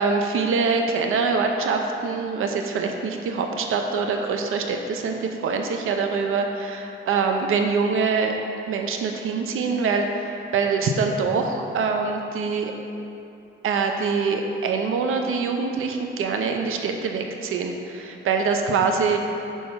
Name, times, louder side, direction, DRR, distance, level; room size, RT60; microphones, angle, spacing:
voice 1, 0.0-8.4 8.7-12.7 13.6-19.2, right 4 dB, 80° right, 4 dB, 0.7 m, -24 dB
6.3 x 4.4 x 5.5 m, 2.8 s
wide cardioid pair, 160°, 21 cm